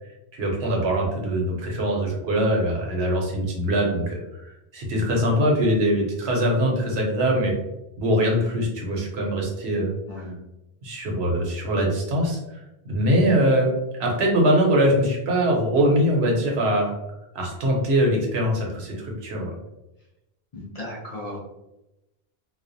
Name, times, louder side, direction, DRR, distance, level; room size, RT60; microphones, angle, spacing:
voice 1, 0.3-7.5 8.0-9.9 10.8-12.4 12.9-13.7 14.0-16.9 17.3-19.5, equal, 80° right, 0 dB, 0.9 m, -22 dB
voice 2, 10.1-10.4 20.5-21.4, left 1 dB, 45° left, -4 dB, 0.6 m, -35 dB
2.3 x 2.1 x 2.5 m, 0.93 s
omnidirectional pair, 1.1 m